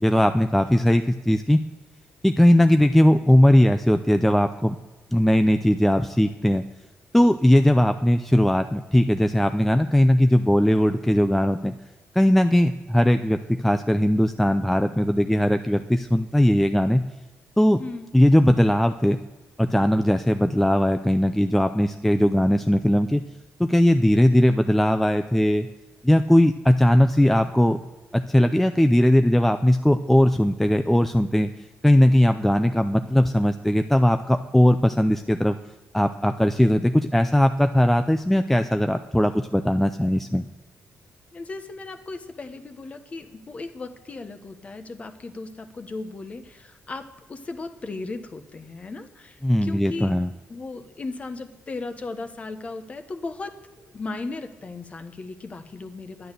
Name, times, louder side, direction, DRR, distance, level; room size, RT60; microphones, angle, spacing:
voice 1, 0.0-1.6 2.2-4.8 5.1-6.6 7.1-11.7 12.1-17.0 17.6-17.8 18.1-19.2 19.6-23.2 23.6-25.7 26.0-27.8 28.1-31.5 31.8-35.6 35.9-40.4 49.4-50.3, left 1 dB, 5° left, 8 dB, 0.4 m, -19 dB
voice 2, 17.8-18.1 41.3-50.1 50.5-53.6 53.8-56.3, left 3 dB, 30° left, 8 dB, 1.0 m, -36 dB
11.0 x 10.0 x 6.6 m, 1.2 s
cardioid pair, 145°, 5 cm